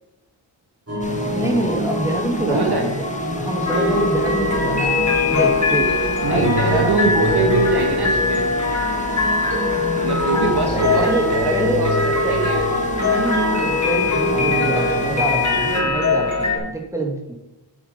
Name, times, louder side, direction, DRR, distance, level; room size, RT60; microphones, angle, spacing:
sound 1, 0.9-15.9, equal, 30° right, 3.1 m, -27 dB
sound 2, 1.0-15.8, left 1 dB, 15° left, 1.4 m, -37 dB
voice 1, 1.3-3.1 3.4-5.9 6.3-6.9 10.3-11.9 12.2-12.4 13.0-17.3, right 2 dB, 5° right, -1 dB, 2.5 m, -26 dB
voice 2, 2.5-2.8 6.2-8.4 9.9-12.7 12.9-13.5, right 3 dB, 55° right, 2 dB, 1.5 m, -23 dB
sound 3, 3.6-16.6, left 3 dB, 35° left, 3.4 m, -21 dB
8.2 x 8.1 x 5.4 m, 0.93 s
wide cardioid pair, 50°, 46 cm